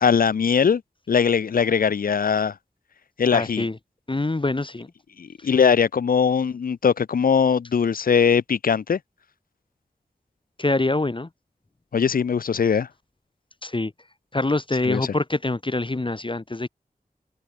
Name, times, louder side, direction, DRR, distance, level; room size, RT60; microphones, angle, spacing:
voice 1, 0.0-0.8 1.1-2.5 3.2-3.6 5.2-9.0 11.9-12.9 14.8-15.0, left 6 dB, 65° left, 0.4 m, -20 dB
voice 2, 3.3-3.8 4.1-4.9 10.6-11.3 13.6-13.9 14.3-16.7, left 2 dB, 35° left, 0.9 m, -25 dB
open air
wide cardioid pair, 50°, 16 cm